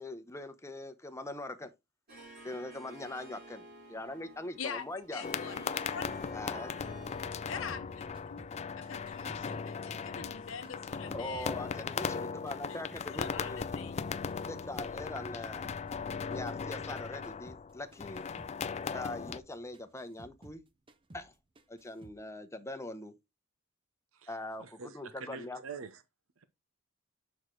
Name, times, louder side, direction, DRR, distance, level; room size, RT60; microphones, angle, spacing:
voice 1, 0.0-1.7 2.4-5.2 6.3-6.7 9.9-10.0 11.1-13.6 14.4-15.7 16.2-18.2 18.9-20.6 21.1-21.3 21.7-23.1 24.3-25.6, left 2 dB, 15° left, 0.8 m, -42 dB
Harp, 2.1-7.6, right 2 dB, 55° right, 4.5 m, -51 dB
voice 2, 5.1-6.1 7.5-8.5 8.8-12.3 12.7-12.8 13.1-14.0, left 6 dB, 70° left, 0.8 m, -44 dB
sound 1, 5.2-19.4, left 6 dB, 35° left, 0.3 m, -38 dB
sound 2, 7.7-10.4 10.6-13.3 13.6-17.0 17.2-17.7 17.9-20.6 20.9-21.3 21.6-22.2, right 1 dB, 25° right, 0.6 m, -56 dB
voice 3, 24.6-26.0, right 5 dB, 80° right, 0.6 m, -45 dB
6.4 x 4.6 x 3.8 m
head